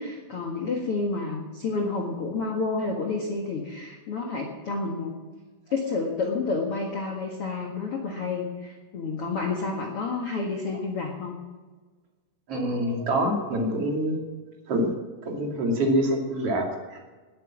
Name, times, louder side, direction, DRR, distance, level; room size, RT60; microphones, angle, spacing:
voice 1, 0.0-5.2 5.7-11.3, left 3 dB, 50° left, 1 dB, 1.8 m, -30 dB
voice 2, 12.5-14.2 14.7-14.9 15.2-17.2, right 1 dB, 40° right, 1 dB, 3.2 m, -26 dB
19.5 x 8.9 x 7.5 m, 1.3 s
omnidirectional pair, 4.9 m